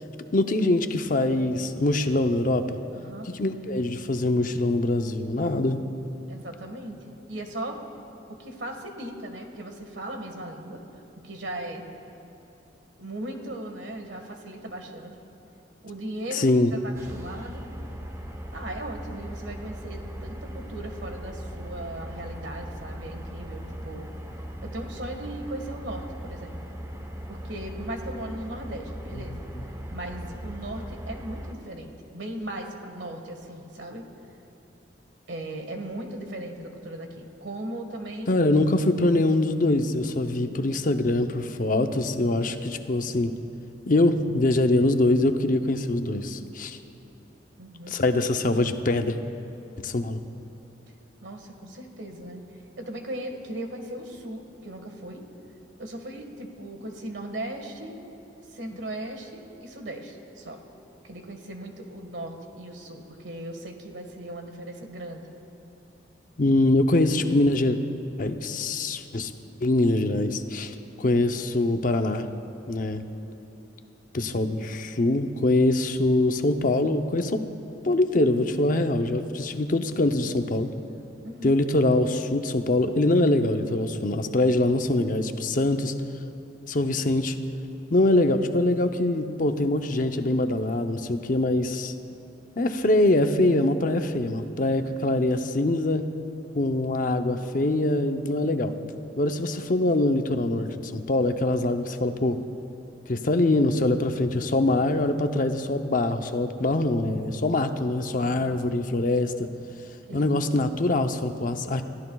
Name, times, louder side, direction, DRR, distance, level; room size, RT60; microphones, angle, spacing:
voice 1, 0.3-2.8 3.3-5.8 16.3-16.7 38.3-43.3 43.9-46.8 47.9-49.2 49.8-50.2 66.4-67.8 68.2-69.3 69.6-72.3 72.7-73.0 74.1-77.4 77.8-80.7 81.4-85.9 86.7-87.4 87.9-91.9 92.6-96.1 96.5-98.7 99.2-102.4 103.1-109.5 110.1-111.9, left 2 dB, 50° left, 7 dB, 0.7 m, -23 dB
voice 2, 2.9-3.3 6.3-7.9 8.3-10.8 11.2-11.9 13.0-15.1 15.8-17.6 18.5-24.1 24.6-26.6 27.3-29.5 29.9-34.0 35.3-38.4 40.4-40.7 47.6-48.0 51.2-55.2 55.8-58.0 58.5-60.6 61.0-65.3 81.2-81.5 99.5-99.7 108.2-108.6 110.1-110.4, right 1 dB, 85° right, 4 dB, 1.6 m, -38 dB
sound 1, 16.9-31.5, equal, 15° right, 0.9 m, -38 dB
29.5 x 14.5 x 2.3 m, 3.0 s
head